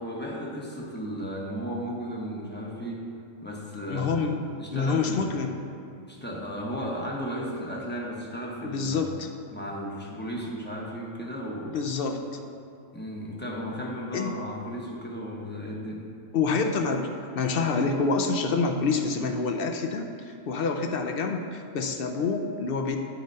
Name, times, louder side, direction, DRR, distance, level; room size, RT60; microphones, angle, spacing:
voice 1, 0.0-3.1 3.4-4.1 4.6-5.3 6.1-9.1 9.5-11.8 12.9-16.0, equal, 10° left, -3 dB, 0.9 m, -35 dB
voice 2, 3.9-4.4 4.7-5.6 8.6-9.3 11.7-12.2 14.1-14.4 16.3-23.0, left 4 dB, 60° left, 5 dB, 0.7 m, -27 dB
10.0 x 4.0 x 5.3 m, 2.5 s
omnidirectional pair, 1.3 m